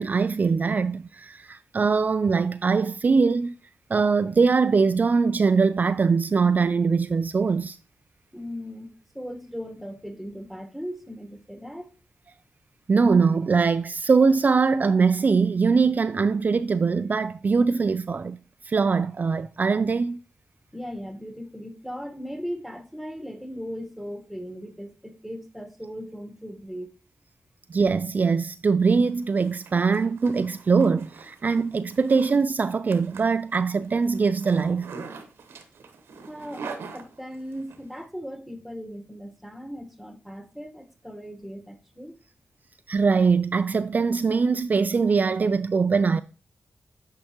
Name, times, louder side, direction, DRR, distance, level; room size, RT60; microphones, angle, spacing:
voice 1, 0.0-3.5 3.9-7.8 12.9-18.4 18.6-20.2 27.7-34.9 42.9-46.2, right 5 dB, 45° right, 0.3 m, -22 dB
voice 2, 8.3-11.9 20.7-27.0 36.2-42.2, equal, ahead, 1.4 m, -38 dB
Zipper (clothing), 29.1-37.8, right 5 dB, 90° right, 1.0 m, -43 dB
8.9 x 4.6 x 2.9 m
cardioid pair, 50°, 4 cm